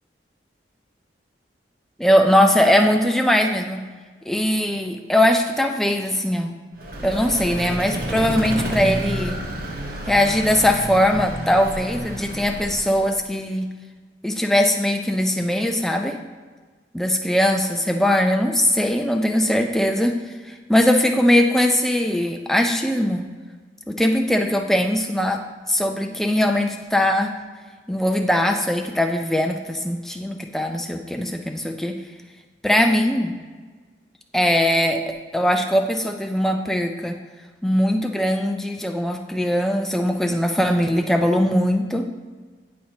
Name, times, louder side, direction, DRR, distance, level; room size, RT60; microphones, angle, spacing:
voice 1, 2.0-3.8 4.3-6.5 7.0-9.4 10.1-13.7 14.2-16.2 16.9-20.2 20.5-23.3 23.9-25.4 25.7-27.3 27.9-32.0 32.6-33.3 34.3-35.0 35.3-37.1 37.6-42.0, left 1 dB, ahead, 3 dB, 0.4 m, -20 dB
Vehicle, 6.7-13.2, right 1 dB, 50° right, 0.9 m, -30 dB
10.0 x 4.3 x 2.8 m, 1.4 s
head